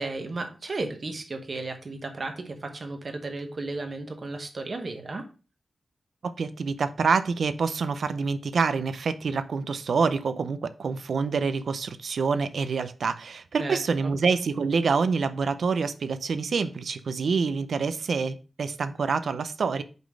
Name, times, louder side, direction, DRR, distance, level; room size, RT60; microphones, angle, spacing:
voice 1, 0.0-5.3 13.6-14.1, right 3 dB, 45° right, 1.1 m, -34 dB
voice 2, 6.2-19.8, right 5 dB, 80° right, 0.5 m, -26 dB
5.3 x 4.0 x 6.0 m
wide cardioid pair, 175°, 0 cm